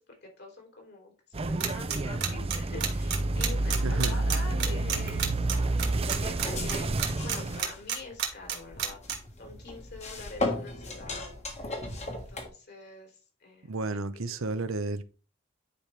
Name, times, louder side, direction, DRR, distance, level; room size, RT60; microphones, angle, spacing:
voice 1, 0.1-13.7, left 3 dB, 55° left, 3.2 m, -45 dB
sound 1, 1.3-7.6, right 2 dB, 30° right, 0.5 m, -29 dB
sound 2, 1.6-9.2, right 9 dB, 55° right, 1.8 m, -29 dB
voice 2, 3.8-4.2 13.6-15.0, right 3 dB, 85° right, 0.8 m, -32 dB
sound 3, 6.4-12.5, left 2 dB, 35° left, 1.6 m, -37 dB
10.0 x 5.0 x 3.4 m
head